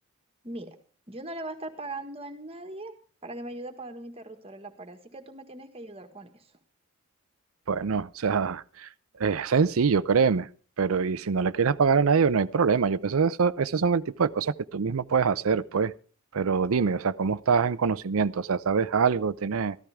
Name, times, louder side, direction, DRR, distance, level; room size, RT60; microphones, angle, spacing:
voice 1, 0.4-0.8 1.1-2.9 3.2-6.5, right 2 dB, 30° right, 7 dB, 1.6 m, -40 dB
voice 2, 7.7-8.9 9.2-10.5 10.8-15.9 16.3-19.8, right 5 dB, 80° right, 17 dB, 0.5 m, -24 dB
14.0 x 13.5 x 3.5 m, 0.40 s
head